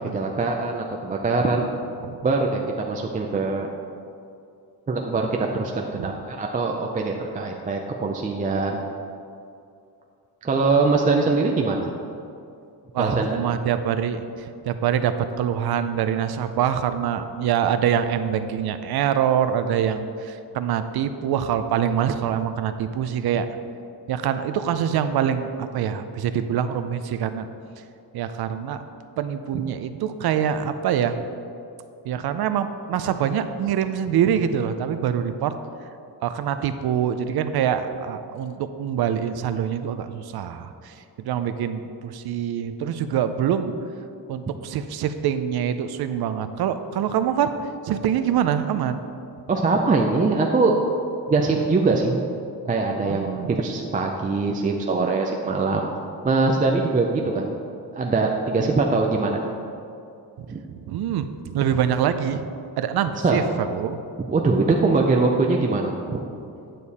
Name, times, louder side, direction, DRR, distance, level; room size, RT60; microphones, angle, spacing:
voice 1, 0.1-1.6 2.2-3.7 4.9-8.8 10.4-11.9 13.0-13.4 49.5-50.7 51.3-52.2 52.7-55.9 56.2-57.5 57.9-59.4 60.5-60.6 63.2-63.4 64.3-66.2, right 3 dB, 20° right, 1 dB, 0.4 m, -22 dB
voice 2, 12.9-23.5 24.1-27.5 28.1-28.8 29.2-31.2 32.0-35.5 36.2-43.7 44.3-47.5 47.8-49.0 53.1-53.6 58.6-58.7 60.4-60.5 60.9-62.5 62.8-64.0, right 9 dB, 70° right, 10 dB, 0.6 m, -25 dB
9.3 x 6.7 x 4.1 m, 2.5 s
cardioid pair, 155°, 40 cm